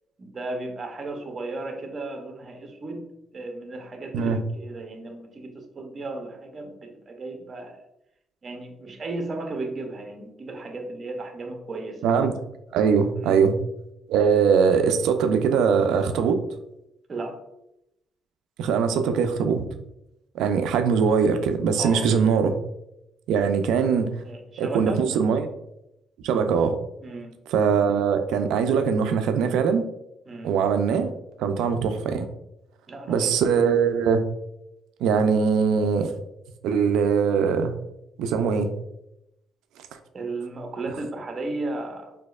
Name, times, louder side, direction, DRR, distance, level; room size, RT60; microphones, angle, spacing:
voice 1, 0.2-3.1 3.3-7.8 8.4-12.0 13.2-13.4 17.1-17.4 21.8-22.1 24.2-25.0 27.0-27.3 30.3-30.5 32.9-33.3 40.1-42.2, right 2 dB, 40° right, 5 dB, 0.6 m, -34 dB
voice 2, 12.0-12.3 12.7-13.5 14.1-16.4 18.6-19.7 20.3-22.6 23.3-24.1 24.6-25.5 26.2-26.8 27.5-29.8 30.4-31.1 31.4-32.3 33.1-34.2 35.0-36.1 36.6-37.7 38.2-38.7, right 6 dB, 90° right, 8 dB, 0.3 m, -21 dB
4.2 x 2.7 x 2.3 m, 0.85 s
cardioid pair, 90°, 0 cm